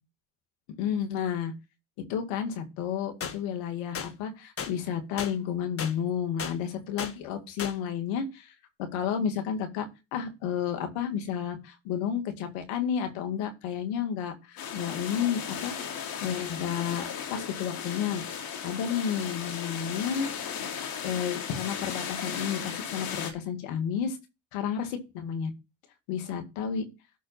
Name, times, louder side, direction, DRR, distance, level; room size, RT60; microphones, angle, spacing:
voice 1, 0.8-1.5 2.1-8.5 8.8-17.0 17.3-18.2 18.6-20.8 21.0-24.2 24.5-25.5 26.1-26.8, left 8 dB, 85° left, 6 dB, 2.1 m, -31 dB
sound 1, 3.2-3.4 3.9-4.1 4.6-4.7 5.2-5.3 5.8-5.9 6.4-6.5 7.0-7.1 7.6-7.7, left 6 dB, 35° left, 1.4 m, -34 dB
sound 2, 14.6-23.3, left 7 dB, 65° left, 2.6 m, -36 dB
12.0 x 4.4 x 5.6 m, 0.27 s
supercardioid pair, 70°, 39 cm